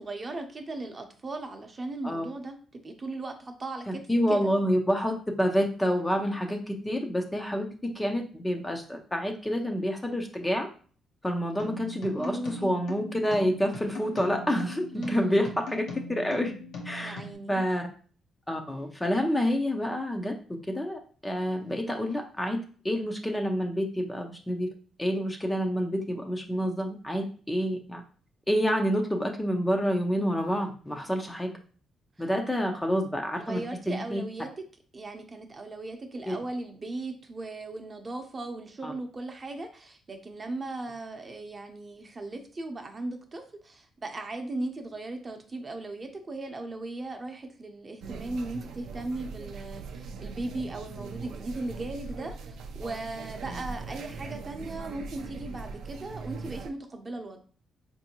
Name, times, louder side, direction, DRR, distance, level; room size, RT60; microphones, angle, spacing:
voice 1, 0.0-4.0 4.3-4.5 12.2-12.7 14.9-15.4 17.0-17.6 33.4-34.5 34.9-57.4, right 2 dB, 30° right, 4 dB, 0.7 m, -37 dB
voice 2, 3.9-10.7 11.2-15.8 16.1-16.5 16.8-17.2 17.5-17.9 18.5-20.4 20.7-24.7 25.0-28.0 28.5-31.5 32.2-33.6 33.9-34.2 36.3-36.4 38.8-38.9 53.5-53.6, equal, 10° left, 3 dB, 0.6 m, -28 dB
sound 1, 11.6-17.3, left 2 dB, 75° left, 1.0 m, -40 dB
sound 2, 48.0-56.7, right 4 dB, 80° right, 0.4 m, -40 dB
4.3 x 2.6 x 2.9 m, 0.42 s
cardioid pair, 90°, 0 cm